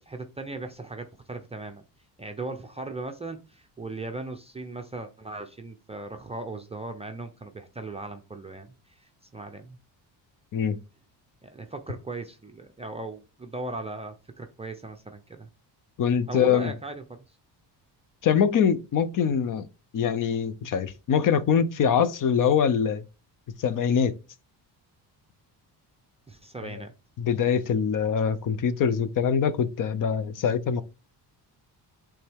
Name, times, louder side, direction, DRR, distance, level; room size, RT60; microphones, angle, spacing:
voice 1, 0.1-1.8 2.2-9.8 11.4-15.5 16.3-17.4 26.3-26.9, right 3 dB, 15° right, 0.5 m, -38 dB
voice 2, 16.0-16.7 18.2-19.7 19.9-23.0 23.6-24.1 27.2-30.8, left 7 dB, 50° left, 0.7 m, -23 dB
8.5 x 3.5 x 3.5 m
cardioid pair, 135°, 43 cm